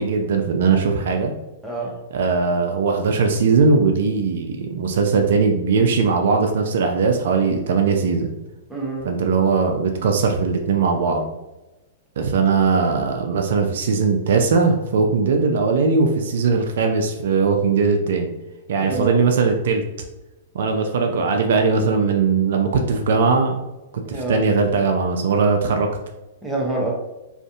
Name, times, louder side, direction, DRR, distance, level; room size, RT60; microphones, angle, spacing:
voice 1, 0.0-1.3 2.1-8.3 9.1-11.2 12.2-18.3 18.7-19.8 20.5-23.6 24.1-25.9, right 4 dB, 65° right, 3 dB, 0.3 m, -19 dB
voice 2, 1.6-2.0 8.7-9.1 18.8-19.2 24.0-24.4 26.4-26.9, right 2 dB, 5° right, -3 dB, 0.7 m, -26 dB
2.5 x 2.4 x 2.3 m, 1.0 s
hypercardioid pair, 110°, 0 cm